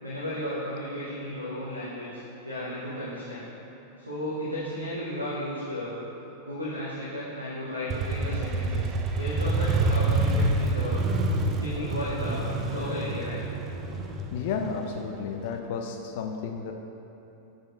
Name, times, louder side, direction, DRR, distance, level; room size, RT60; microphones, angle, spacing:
voice 1, 0.0-3.5 4.0-6.0 6.4-11.0 11.6-12.4 12.7-13.4, equal, 85° right, -8 dB, 0.9 m, -34 dB
Motorcycle, 7.9-15.5, right 2 dB, 30° right, 0.4 m, -27 dB
voice 2, 14.3-16.7, left 5 dB, 50° left, 4 dB, 0.3 m, -32 dB
11.0 x 3.9 x 2.4 m, 2.9 s
figure-of-eight pair, 90°, 0 cm